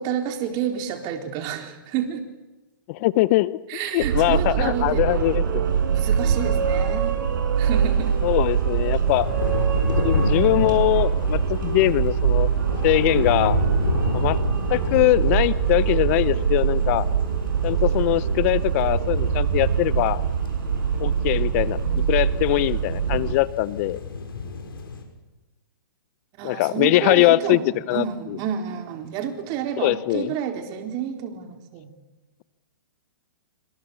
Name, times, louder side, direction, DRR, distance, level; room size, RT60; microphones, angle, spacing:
voice 1, 0.0-2.2 3.7-5.0 5.9-7.2 7.6-8.1 26.4-31.9, right 9 dB, 35° right, 5 dB, 4.1 m, -29 dB
voice 2, 2.9-3.6 3.9-5.6 8.2-9.3 10.0-12.5 12.8-13.6 14.1-14.4 14.7-17.1 17.6-20.2 21.0-24.0 26.4-27.6 27.9-28.4 29.8-30.3, left 18 dB, 40° left, 18 dB, 0.8 m, -22 dB
sound 1, 4.0-23.3, right 7 dB, 60° right, 6.0 m, -23 dB
sound 2, 7.6-25.0, left 4 dB, 75° left, 6.1 m, -31 dB
27.5 x 25.5 x 7.1 m, 1.1 s
hypercardioid pair, 125°, 12 cm